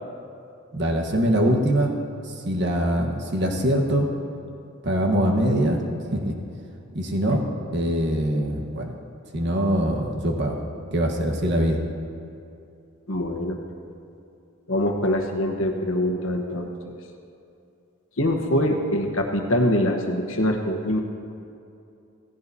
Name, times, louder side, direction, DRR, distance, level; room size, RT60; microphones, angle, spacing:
voice 1, 0.7-1.9 2.3-4.1 4.8-5.8 6.1-6.3 6.9-7.4 7.7-8.9 9.3-10.6 10.9-11.8, equal, 55° right, 1 dB, 1.3 m, -23 dB
voice 2, 13.1-13.6 14.7-16.9 18.2-21.0, left 1 dB, 70° left, 2 dB, 1.2 m, -24 dB
16.0 x 15.0 x 2.8 m, 2.6 s
head